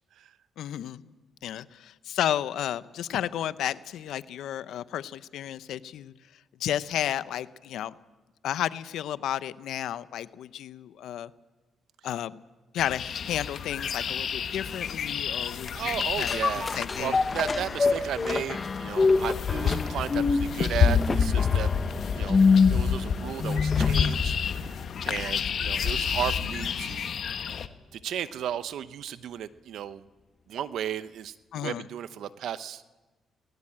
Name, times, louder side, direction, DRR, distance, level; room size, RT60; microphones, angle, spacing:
voice 1, 0.6-1.0 1.4-6.1 6.6-7.9 8.4-11.3 12.0-12.4 12.7-17.2 31.5-31.9, left 11 dB, 75° left, 16 dB, 0.7 m, -32 dB
sound 1, 12.8-27.7, left 7 dB, 60° left, 1.1 m, -29 dB
sound 2, 15.6-24.2 24.7-24.8, left 4 dB, 30° left, 1.2 m, -26 dB
voice 2, 15.7-21.7 22.1-22.4 22.7-24.7 25.0-27.1 27.9-30.1 30.5-32.8, right 10 dB, 75° right, 14 dB, 0.8 m, -34 dB
19.0 x 17.5 x 8.7 m, 1.2 s
cardioid pair, 90°, 0 cm